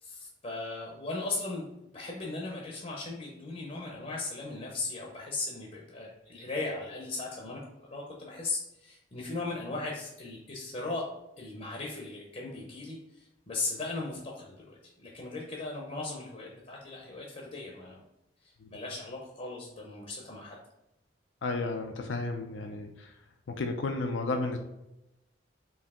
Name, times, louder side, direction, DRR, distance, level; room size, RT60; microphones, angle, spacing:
voice 1, 0.0-11.0 11.4-18.0 18.4-20.6, left 3 dB, 35° left, -1 dB, 0.7 m, -38 dB
voice 2, 21.4-23.1 23.5-24.6, left 3 dB, 75° left, 5 dB, 0.5 m, -33 dB
4.7 x 2.7 x 3.5 m, 0.90 s
head